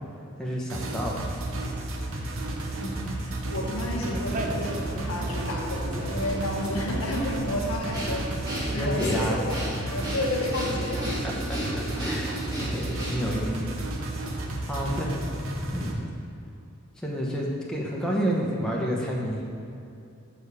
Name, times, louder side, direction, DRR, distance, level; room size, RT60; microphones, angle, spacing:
voice 1, 0.4-1.3 8.7-9.5 11.2-12.4 12.7-13.8 14.6-15.1 15.7-16.0 17.0-19.4, equal, 5° left, -4 dB, 0.9 m, -29 dB
sound 1, 0.7-15.9, right 1 dB, 65° right, 0.9 m, -33 dB
voice 2, 2.8-3.1 3.5-8.3 8.6-11.1 14.8-15.2, left 1 dB, 85° left, -2 dB, 1.5 m, -31 dB
Conversation, 3.5-8.8, right 1 dB, 35° right, 0.6 m, -37 dB
Breathing, 7.9-13.4, equal, 20° right, 1.6 m, -34 dB
6.3 x 5.0 x 6.8 m, 2.7 s
head